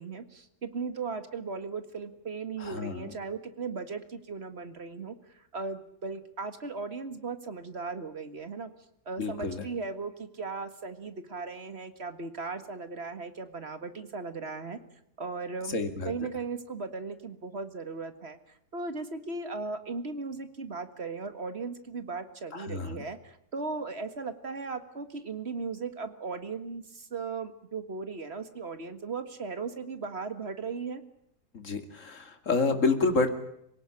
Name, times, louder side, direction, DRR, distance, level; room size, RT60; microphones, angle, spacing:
voice 1, 0.0-8.7 9.1-14.8 15.2-15.8 16.1-31.0, right 4 dB, 40° right, 10 dB, 2.0 m, -37 dB
voice 2, 2.6-3.2 9.2-9.6 15.7-16.1 22.5-23.0 31.5-33.3, left 3 dB, 50° left, 7 dB, 2.7 m, -29 dB
26.5 x 17.5 x 9.9 m, 0.75 s
omnidirectional pair, 1.7 m